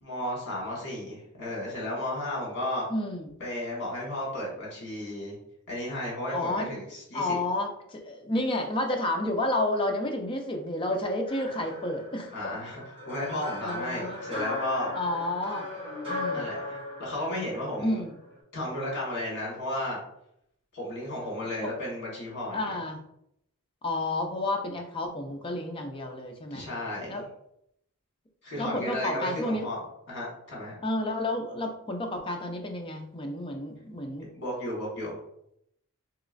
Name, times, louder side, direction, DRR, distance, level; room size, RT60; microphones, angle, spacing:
voice 1, 0.0-2.9 3.4-5.4 5.7-7.4 12.3-14.9 16.3-18.0 18.5-20.0 20.7-22.8 26.5-27.1 28.4-29.8 30.1-30.8 34.3-35.2, left 1 dB, 55° left, -4 dB, 1.4 m, -33 dB
voice 2, 2.9-3.3 6.3-6.7 7.1-12.3 13.6-14.2 14.9-15.7 16.1-16.5 17.8-18.1 21.6-21.7 22.5-23.0 23.8-26.7 27.1-27.3 28.6-29.7 30.8-34.3, left 1 dB, 25° left, 3 dB, 0.4 m, -30 dB
sound 1, 11.3-18.4, left 2 dB, 25° right, 1.2 m, -38 dB
3.1 x 2.9 x 2.5 m, 0.75 s
head